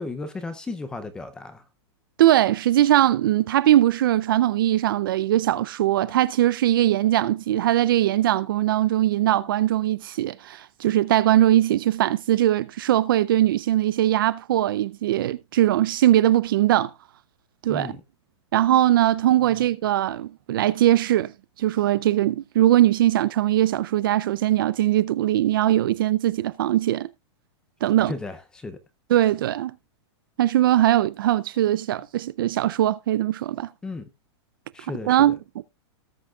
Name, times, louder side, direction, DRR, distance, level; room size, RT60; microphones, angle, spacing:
voice 1, 0.0-1.6 17.7-18.0 19.5-19.7 28.1-28.8 33.8-34.1 34.7-35.4, left 3 dB, 5° left, 0.5 m, -34 dB
voice 2, 2.2-16.9 17.6-17.9 18.5-21.3 21.6-27.1 27.8-28.1 29.1-29.7 30.4-33.7 35.1-35.6, right 13 dB, 50° right, 0.4 m, -20 dB
18.5 x 6.2 x 2.3 m
supercardioid pair, 180°, 15 cm